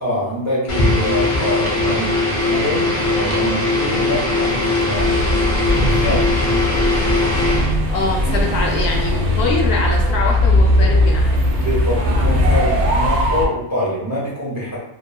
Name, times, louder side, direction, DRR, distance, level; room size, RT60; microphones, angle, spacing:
voice 1, 0.0-5.1 5.7-6.3 11.6-14.8, equal, 30° right, -6 dB, 0.3 m, -25 dB
sound 1, 0.7-7.8, left 2 dB, 40° left, 0.5 m, -19 dB
sound 2, 5.0-13.5, left 1 dB, 80° right, 0.9 m, -18 dB
voice 2, 7.9-11.4, left 3 dB, 70° left, -1 dB, 0.8 m, -23 dB
2.9 x 2.1 x 2.3 m, 0.79 s
omnidirectional pair, 1.2 m